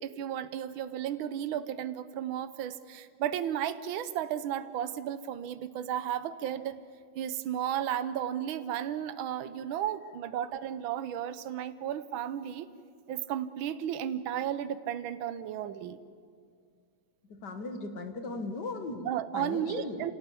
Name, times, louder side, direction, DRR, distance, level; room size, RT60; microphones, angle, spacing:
voice 1, 0.0-6.8 7.1-12.7 13.1-16.0 19.0-20.1, right 10 dB, 75° right, 12 dB, 1.6 m, -34 dB
voice 2, 17.3-20.1, left 3 dB, 55° left, 7 dB, 2.2 m, -38 dB
27.0 x 17.0 x 8.5 m, 2.2 s
omnidirectional pair, 2.3 m